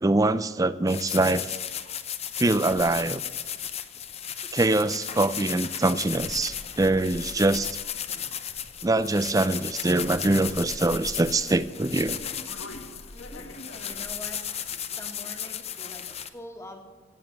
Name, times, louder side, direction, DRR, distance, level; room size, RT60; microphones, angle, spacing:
voice 1, 0.0-1.5 2.4-3.2 4.5-7.8 8.8-12.2, right 2 dB, 15° right, 14 dB, 0.4 m, -24 dB
sound 1, 0.9-16.3, left 9 dB, 30° left, 0.6 m, -35 dB
sound 2, 4.6-14.7, left 1 dB, 75° left, 1.6 m, -46 dB
voice 2, 13.1-14.4 14.9-16.8, left 1 dB, 15° left, 2 dB, 1.8 m, -44 dB
16.5 x 7.3 x 7.7 m, 1.4 s
head